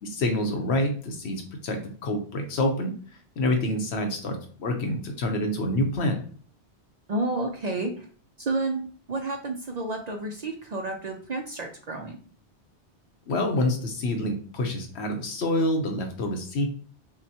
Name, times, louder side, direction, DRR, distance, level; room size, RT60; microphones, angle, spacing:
voice 1, 0.0-3.0 3.4-6.2 13.3-16.7, left 1 dB, 75° left, 4 dB, 1.1 m, -27 dB
voice 2, 7.1-8.1 8.4-12.2, right 2 dB, 50° right, 3 dB, 0.5 m, -30 dB
5.9 x 2.1 x 2.8 m, 0.43 s
omnidirectional pair, 1.1 m